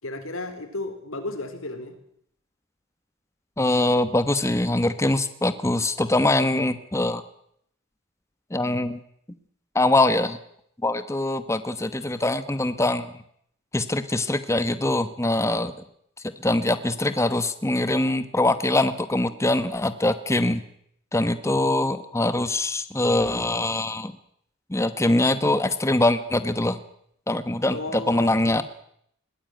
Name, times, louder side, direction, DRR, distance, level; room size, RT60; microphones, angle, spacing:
voice 1, 0.0-2.0 27.6-28.6, left 2 dB, 85° left, 9 dB, 4.2 m, -34 dB
voice 2, 3.6-7.2 8.5-9.0 9.7-10.4 10.8-13.1 13.7-15.7 16.4-20.6 21.1-24.1 24.7-26.8 27.3-28.6, left 2 dB, 15° left, 11 dB, 1.1 m, -23 dB
21.0 x 19.0 x 9.2 m, 0.70 s
head